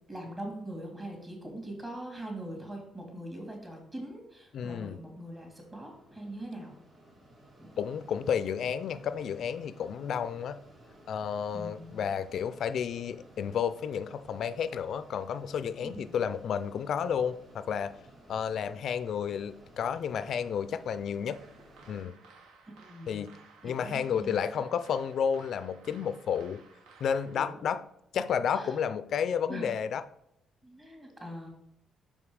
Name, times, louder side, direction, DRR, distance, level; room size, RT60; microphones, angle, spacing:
voice 1, 0.1-6.8 7.6-7.7 11.5-12.1 15.8-16.1 22.8-23.2 23.6-24.4 27.4-27.5 28.5-28.8 29.5-29.8 30.6-31.5, right 1 dB, 25° right, 1 dB, 2.5 m, -42 dB
Mechanisms, 4.0-22.0, right 1 dB, 55° right, 2.3 m, -56 dB
voice 2, 4.5-5.0 7.8-10.6 11.1-18.0 18.3-21.4 21.9-22.1 23.1-23.3 23.6-26.7 27.0-27.8 28.1-30.0, left 7 dB, 65° left, 13 dB, 0.3 m, -31 dB
sound 1, 21.3-27.4, right 4 dB, 85° right, 0.9 m, -57 dB
5.2 x 5.1 x 4.8 m, 0.77 s
cardioid pair, 90°, 0 cm